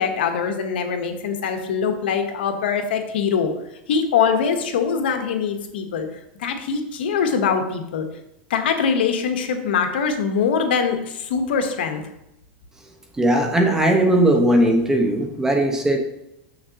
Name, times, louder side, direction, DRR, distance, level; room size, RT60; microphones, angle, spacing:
voice 1, 0.0-3.5 3.9-6.1 6.4-8.1 8.5-12.0, left 6 dB, 80° left, 6 dB, 1.0 m, -23 dB
voice 2, 13.2-16.0, right 1 dB, 10° right, 3 dB, 1.0 m, -18 dB
6.9 x 6.4 x 2.8 m, 0.85 s
supercardioid pair, 135°, 6 cm